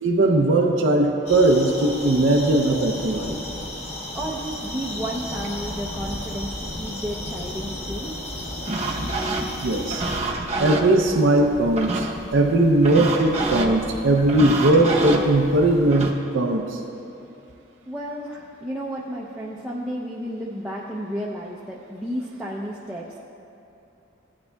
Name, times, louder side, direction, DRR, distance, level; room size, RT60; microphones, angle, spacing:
voice 1, 0.0-3.4 9.6-10.1 10.6-16.8, right 2 dB, 70° right, 1 dB, 0.6 m, -19 dB
sound 1, 1.3-10.2, left 1 dB, 35° left, 1.0 m, -34 dB
voice 2, 4.1-8.2 17.9-23.2, equal, 5° right, -5 dB, 0.5 m, -32 dB
sound 2, 8.7-16.1, right 2 dB, 35° right, 0.8 m, -29 dB
15.5 x 9.6 x 2.3 m, 2.8 s
head